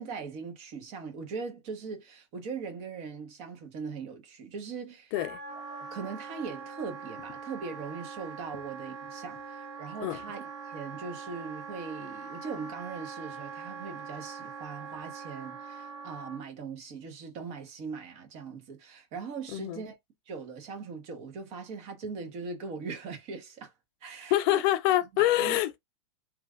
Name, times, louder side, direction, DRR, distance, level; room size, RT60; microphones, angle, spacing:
voice 1, 0.0-5.1 5.7-19.9 20.3-23.7 24.0-24.6 25.1-25.6, right 5 dB, 45° right, 1.1 m, -40 dB
Wind instrument woodwind instrument, 5.1-16.4, right 5 dB, 75° right, 1.0 m, -42 dB
voice 2, 19.5-19.8 24.3-25.8, left 14 dB, 50° left, 0.5 m, -26 dB
3.1 x 2.4 x 2.5 m
hypercardioid pair, 125°, 15 cm